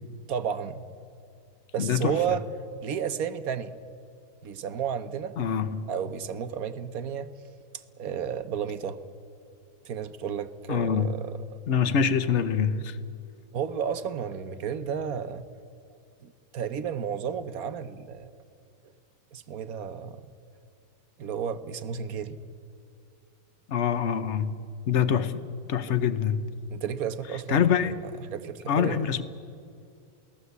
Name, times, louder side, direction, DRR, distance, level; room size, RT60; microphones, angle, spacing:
voice 1, 0.3-0.8 1.7-2.4 2.8-3.7 4.4-5.4 5.9-7.3 8.0-9.0 9.8-11.6 13.5-15.4 16.2-18.3 19.3-20.3 21.2-22.4 25.9-26.0 26.7-27.9 28.3-29.0, right 8 dB, 55° right, 1.0 m, -32 dB
voice 2, 1.8-2.2 5.4-5.9 10.7-11.2 11.7-13.0 23.7-25.4 25.7-26.5 27.5-28.0 28.7-29.2, left 7 dB, 50° left, 0.9 m, -25 dB
28.5 x 18.0 x 8.2 m
omnidirectional pair, 2.3 m